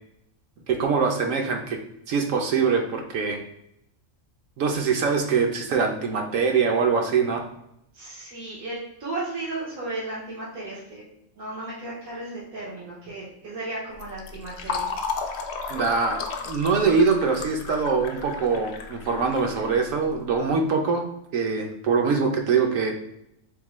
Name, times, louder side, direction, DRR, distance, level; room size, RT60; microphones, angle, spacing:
voice 1, 0.7-1.8 2.1-3.4 4.6-7.5 15.7-21.0 21.3-22.9, right 5 dB, 70° right, 3 dB, 1.0 m, -23 dB
voice 2, 7.9-11.0 11.3-14.9, right 2 dB, 85° right, -6 dB, 1.5 m, -35 dB
Fill (with liquid), 13.9-20.3, left 4 dB, 65° left, 0.7 m, -34 dB
3.7 x 3.5 x 3.0 m, 0.77 s
omnidirectional pair, 1.5 m